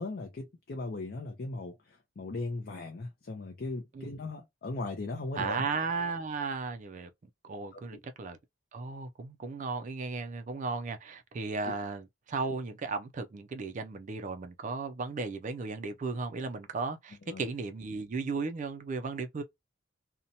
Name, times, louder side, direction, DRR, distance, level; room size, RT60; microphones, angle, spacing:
voice 1, 0.0-5.6 7.7-8.0 11.6-11.7 17.3-17.5, left 2 dB, 50° left, 0.5 m, -38 dB
voice 2, 5.4-7.1 7.4-8.4 8.7-19.4, right 4 dB, 40° right, 0.3 m, -35 dB
2.7 x 2.1 x 2.6 m
head